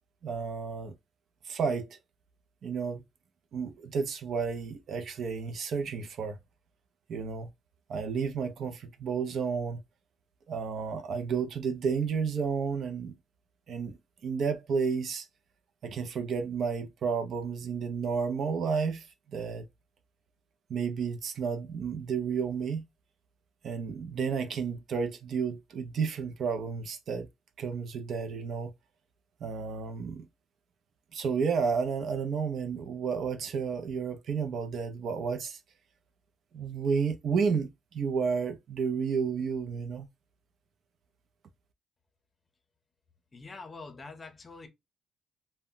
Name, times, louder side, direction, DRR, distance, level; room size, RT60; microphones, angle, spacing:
voice 1, 0.2-0.9 1.4-1.9 2.6-3.0 3.5-6.4 7.1-7.5 7.9-9.8 10.5-13.1 13.7-15.3 15.8-19.7 20.7-22.8 23.6-27.3 27.6-28.7 29.4-30.3 31.1-35.6 36.5-40.1, right 5 dB, 65° right, 0.4 m, -31 dB
voice 2, 43.3-44.7, left 3 dB, 30° left, 0.6 m, -45 dB
2.1 x 2.1 x 3.7 m
cardioid pair, 90°, 0 cm